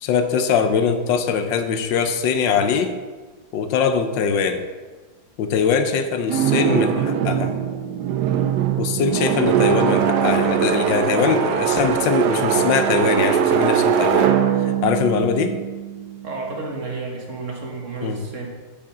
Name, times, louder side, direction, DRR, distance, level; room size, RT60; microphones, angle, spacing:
voice 1, 0.0-2.9 3.5-4.6 5.4-7.5 8.8-14.3 14.6-15.6 18.0-18.2, left 6 dB, 70° left, 8 dB, 1.4 m, -22 dB
sound 1, 6.3-16.3, right 8 dB, 70° right, 1.1 m, -21 dB
voice 2, 16.2-18.5, right 3 dB, 40° right, 0 dB, 1.7 m, -31 dB
7.2 x 5.1 x 6.9 m, 1.4 s
omnidirectional pair, 2.1 m